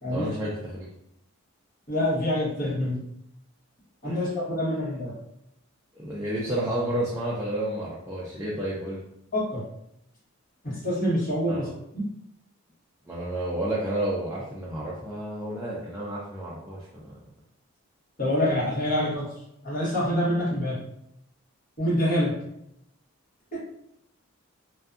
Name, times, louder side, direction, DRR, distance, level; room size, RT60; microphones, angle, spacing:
voice 1, 0.1-0.9 4.0-4.2 5.9-9.0 11.5-11.7 13.1-17.2, right 1 dB, 10° right, -7 dB, 0.3 m, -31 dB
voice 2, 1.9-3.0 4.0-5.1 9.3-9.6 10.6-11.7 11.9-12.0 18.2-19.3 19.6-20.8 21.8-22.3 23.5-23.6, left 1 dB, 40° left, -7 dB, 1.0 m, -26 dB
2.6 x 2.2 x 2.3 m, 0.79 s
head